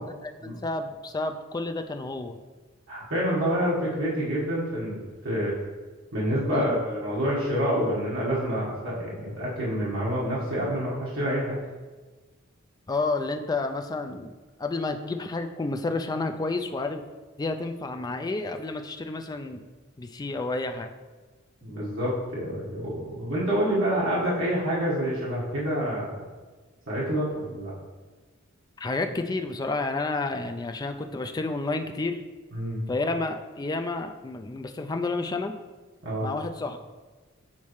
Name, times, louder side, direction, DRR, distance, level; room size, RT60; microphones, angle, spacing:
voice 1, 0.0-2.4 6.5-6.7 12.9-14.3 14.6-17.0 17.4-19.6 20.0-20.9 28.8-32.2 32.9-35.5 36.2-36.8, left 3 dB, 20° left, 6 dB, 0.3 m, -30 dB
voice 2, 2.9-5.5 6.1-11.6 21.6-26.2 26.9-27.7 32.5-32.8 36.0-36.3, equal, 75° right, -8 dB, 1.4 m, -27 dB
7.3 x 4.1 x 3.1 m, 1.3 s
head